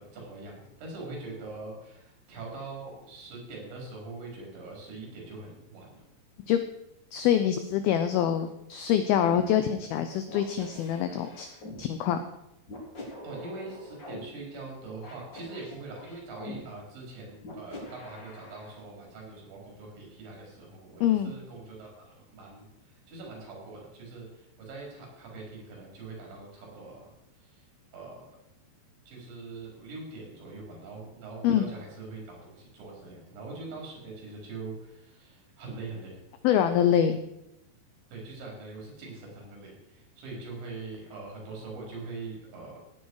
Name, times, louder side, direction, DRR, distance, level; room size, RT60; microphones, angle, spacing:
voice 1, 0.0-6.0 13.2-27.1 27.4-27.6 27.9-28.3 29.1-36.2 38.1-42.8, right 3 dB, 70° right, -2 dB, 6.7 m, -43 dB
voice 2, 7.1-11.5 11.8-12.2 21.0-21.3 31.4-31.7 36.4-37.2, left 9 dB, 85° left, 9 dB, 2.1 m, -25 dB
sound 1, 9.3-9.4 10.3-11.8 12.7-14.2 15.0-16.6 17.4-18.7, left 2 dB, 25° left, 3.5 m, -44 dB
17.0 x 9.9 x 4.8 m, 0.86 s
omnidirectional pair, 5.3 m